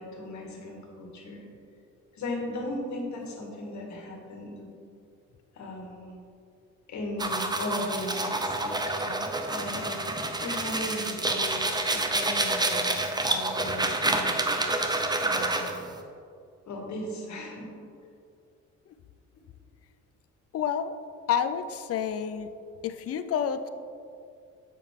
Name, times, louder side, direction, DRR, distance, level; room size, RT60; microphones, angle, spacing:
voice 1, 0.0-1.5 2.1-4.7 5.5-6.1 6.9-14.4 15.2-15.7 16.7-17.7, left 1 dB, 70° left, 0 dB, 1.7 m, -37 dB
sound 1, 7.2-15.9, right 2 dB, 15° right, 0.6 m, -28 dB
voice 2, 20.5-20.9 21.3-22.5 22.8-23.7, left 8 dB, 50° left, 10 dB, 0.5 m, -29 dB
7.5 x 6.3 x 3.6 m, 2.4 s
cardioid pair, 90°, 30 cm